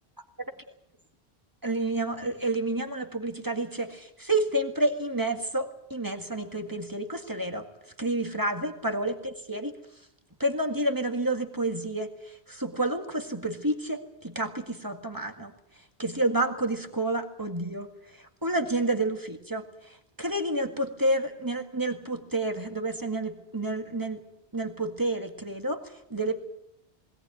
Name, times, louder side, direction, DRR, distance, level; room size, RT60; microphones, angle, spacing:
voice 1, 1.6-7.7 8.0-9.7 10.4-12.1 12.5-15.5 16.0-17.9 18.4-19.7 20.2-24.2 24.5-25.8 26.1-26.4, right 2 dB, 20° right, 5 dB, 1.8 m, -29 dB
20.5 x 17.5 x 9.2 m, 0.82 s
omnidirectional pair, 1.1 m